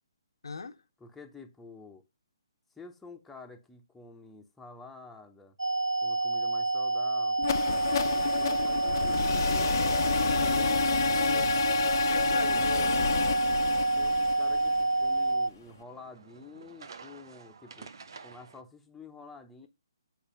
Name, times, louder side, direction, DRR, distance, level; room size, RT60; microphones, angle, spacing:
voice 1, 0.4-0.8 11.2-11.6 12.1-12.9, left 4 dB, 70° left, 0.9 m, -38 dB
voice 2, 1.0-2.0 2.7-5.5 6.0-7.6 8.0-10.0 12.4-13.1 13.9-17.9 18.2-19.7, left 4 dB, 5° left, 1.0 m, -49 dB
sound 1, 5.6-15.5, right 2 dB, 90° right, 0.4 m, -28 dB
sound 2, 7.4-15.3, left 9 dB, 45° left, 0.3 m, -31 dB
sound 3, 13.3-18.6, right 5 dB, 60° right, 0.8 m, -52 dB
7.3 x 4.2 x 5.3 m
figure-of-eight pair, 135°, 3 cm